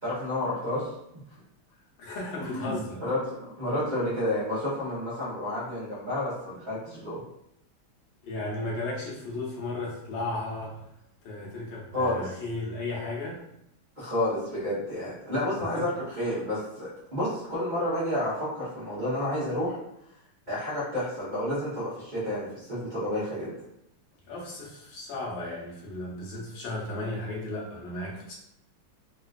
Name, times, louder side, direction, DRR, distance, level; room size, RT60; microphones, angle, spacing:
voice 1, 0.0-0.9 2.4-2.7 3.0-7.2 11.9-12.3 14.0-19.8 20.5-23.5, left 1 dB, 75° right, -11 dB, 0.4 m, -30 dB
voice 2, 2.0-3.0 8.2-10.8 11.2-13.4 15.7-15.8 24.3-28.3, left 2 dB, 70° left, -4 dB, 1.4 m, -35 dB
3.8 x 2.4 x 2.3 m, 0.79 s
omnidirectional pair, 2.3 m